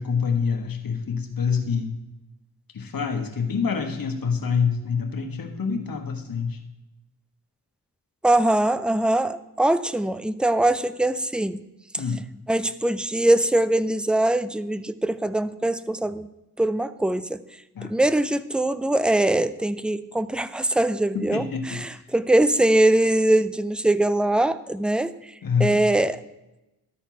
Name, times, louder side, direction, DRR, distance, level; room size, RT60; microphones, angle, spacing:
voice 1, 0.0-1.9 2.7-6.6 12.0-12.2 17.7-18.0 21.1-21.8 25.4-25.8, left 6 dB, 70° left, 5 dB, 1.3 m, -26 dB
voice 2, 8.2-11.6 11.9-12.0 12.5-16.3 16.6-17.4 17.8-25.1 25.6-26.2, right 1 dB, 5° right, 15 dB, 0.4 m, -22 dB
12.5 x 4.4 x 5.7 m, 0.98 s
cardioid pair, 60°, 36 cm